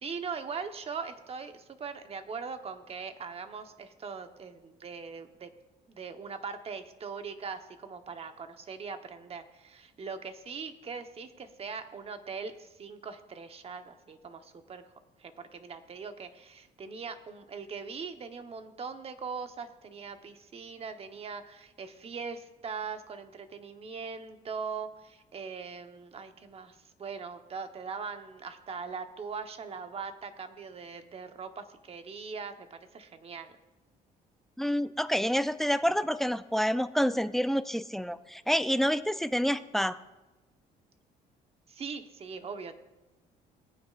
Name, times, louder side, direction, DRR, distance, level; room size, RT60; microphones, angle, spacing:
voice 1, 0.0-5.5 5.9-14.8 15.2-33.5 41.7-42.8, right 5 dB, 35° right, 7 dB, 1.1 m, -41 dB
voice 2, 34.6-40.0, equal, ahead, 12 dB, 0.4 m, -28 dB
19.5 x 9.5 x 2.5 m, 1.1 s
cardioid pair, 110°, 17 cm